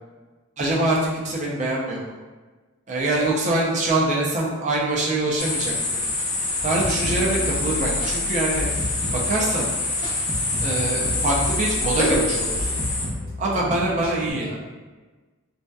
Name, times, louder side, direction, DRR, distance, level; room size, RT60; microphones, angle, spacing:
voice 1, 0.6-2.0 2.9-5.7 6.6-8.7 9.1-9.7 10.6-12.7 13.4-14.6, right 2 dB, 35° right, -3 dB, 0.4 m, -24 dB
sound 1, 5.4-13.1, left 2 dB, 35° left, 0.5 m, -25 dB
sound 2, 6.6-14.3, left 1 dB, 70° right, 1.0 m, -32 dB
2.6 x 2.2 x 2.2 m, 1.3 s
head